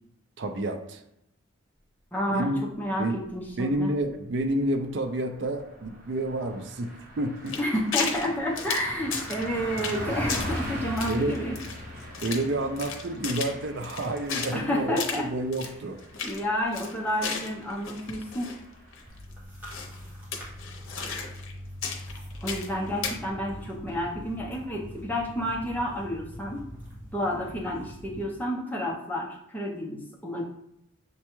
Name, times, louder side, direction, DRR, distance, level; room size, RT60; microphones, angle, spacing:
voice 1, 0.4-1.0 2.3-2.6 3.0-3.2 3.6-7.6 11.1-11.4 12.2-16.0, right 1 dB, 60° right, 6 dB, 0.4 m, -29 dB
voice 2, 2.1-3.9 7.6-11.5 14.5-15.3 16.2-18.5 22.4-26.7 27.1-30.4, equal, 10° left, -2 dB, 0.6 m, -30 dB
Car passing by, 3.5-4.1 4.5-4.6 4.9-19.2, equal, 40° right, 1.0 m, -40 dB
sound 1, 7.5-8.3 8.6-9.5 9.8-10.0 10.3-10.6 11.0-12.5 12.8-14.6 15.0-15.2 15.5-15.7 16.0-16.4 16.7-18.6 18.9-19.0 19.7-20.0 20.3-21.5 21.8-22.7 23.0-23.2, left 5 dB, 80° left, 0.7 m, -34 dB
sound 2, 19.1-28.2, equal, 10° right, 1.0 m, -43 dB
6.5 x 2.2 x 3.0 m, 0.80 s
head